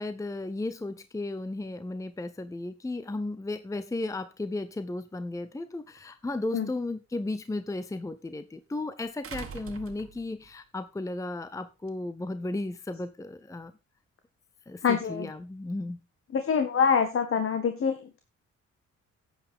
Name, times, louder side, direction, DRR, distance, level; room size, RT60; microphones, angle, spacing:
voice 1, 0.0-13.7 14.7-16.0, left 2 dB, 10° left, 13 dB, 0.7 m, -35 dB
sound 1, 6.0-6.1 9.2-10.5 11.9-12.0, right 6 dB, 45° right, 1.8 m, -42 dB
voice 2, 14.8-15.3 16.3-18.2, left 6 dB, 45° left, 7 dB, 1.7 m, -25 dB
11.5 x 8.7 x 3.6 m, 0.27 s
cardioid pair, 90°, 30 cm